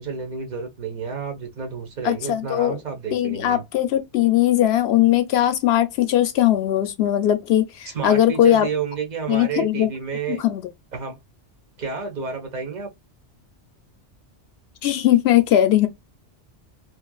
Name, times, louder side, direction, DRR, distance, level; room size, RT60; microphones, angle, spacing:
voice 1, 0.0-3.6 7.9-10.4 10.9-11.2 11.8-12.9, right 5 dB, 40° right, 1.0 m, -30 dB
voice 2, 2.0-2.8 3.1-8.7 9.3-9.9 10.4-10.6 14.8-15.9, left 12 dB, 65° left, 0.8 m, -19 dB
3.1 x 2.4 x 2.3 m
omnidirectional pair, 1.2 m